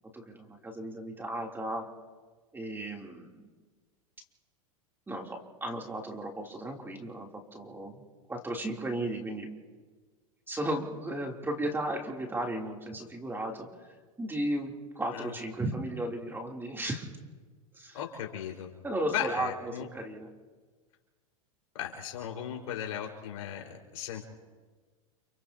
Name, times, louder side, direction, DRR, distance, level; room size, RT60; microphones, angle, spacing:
voice 1, 0.1-1.9 2.5-3.5 5.1-8.0 8.3-9.5 10.5-17.1 17.7-18.0 18.8-20.3, right 1 dB, 10° right, 0 dB, 3.3 m, -35 dB
voice 2, 17.9-18.7 19.1-19.9 21.7-24.2, left 9 dB, 75° left, 0 dB, 5.1 m, -36 dB
29.5 x 29.5 x 2.9 m, 1.4 s
hypercardioid pair, 115°, 18 cm